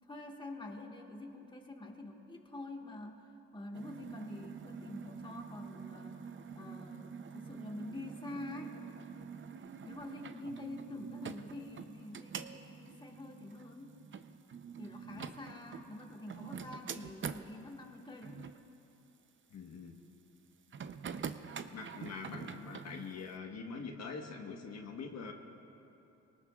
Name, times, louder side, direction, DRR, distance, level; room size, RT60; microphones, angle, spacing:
voice 1, 0.1-3.1 3.5-6.2 6.5-8.8 9.8-14.0 14.8-18.4, left 2 dB, 15° left, 1 dB, 1.7 m, -46 dB
sound 1, 3.7-17.5 18.2-18.6 20.7-23.1, right 6 dB, 40° right, 0.7 m, -46 dB
voice 2, 19.5-19.9 21.7-25.3, left 5 dB, 60° left, 2 dB, 1.3 m, -44 dB
23.5 x 19.0 x 2.4 m, 3.0 s
cardioid pair, 90°, 30 cm